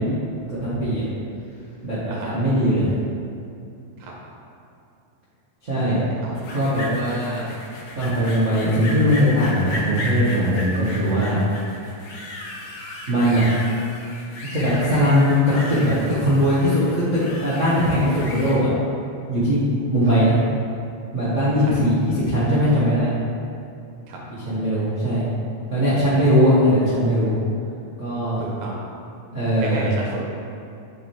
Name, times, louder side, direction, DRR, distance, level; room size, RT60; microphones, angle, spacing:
voice 1, 0.5-1.0 1.8-2.9 5.6-6.0 6.5-7.4 7.9-11.4 13.1-13.4 14.5-15.4 15.7-18.7 19.3-20.4 21.1-23.1 24.3-25.2 25.7-27.3 28.0-28.4 29.3-29.9, equal, 55° right, -12 dB, 0.8 m, -20 dB
voice 2, 5.7-6.5 20.1-20.2 21.6-21.8 24.1-24.2 28.4-28.8 29.6-30.2, right 3 dB, 80° right, -3 dB, 2.4 m, -33 dB
sound 1, 6.4-18.6, left 1 dB, 70° left, 1.3 m, -35 dB
6.7 x 5.1 x 3.2 m, 2.6 s
omnidirectional pair, 3.4 m